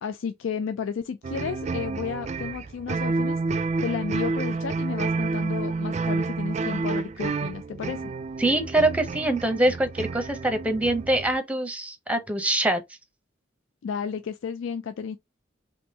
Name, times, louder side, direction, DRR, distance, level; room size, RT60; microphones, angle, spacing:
voice 1, 0.0-3.4 3.8-8.0 13.8-15.2, left 6 dB, 70° left, 0.4 m, -32 dB
sound 1, 1.2-11.4, right 3 dB, 35° right, 0.3 m, -29 dB
voice 2, 8.4-12.8, right 1 dB, 5° right, 0.7 m, -24 dB
3.6 x 3.0 x 2.8 m
head